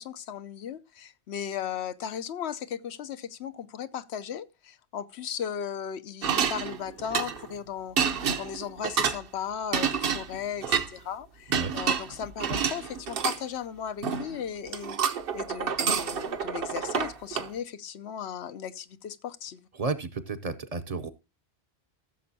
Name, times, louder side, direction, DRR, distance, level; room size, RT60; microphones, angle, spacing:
voice 1, 0.0-19.7, left 8 dB, 85° left, 1.0 m, -36 dB
sound 1, 6.2-7.5 8.0-9.2 9.7-10.9 11.5-13.4 14.0-14.4 14.7-17.5, right 7 dB, 65° right, 1.0 m, -28 dB
voice 2, 19.8-21.1, right 4 dB, 40° right, 0.7 m, -32 dB
15.5 x 6.9 x 2.7 m
omnidirectional pair, 1.1 m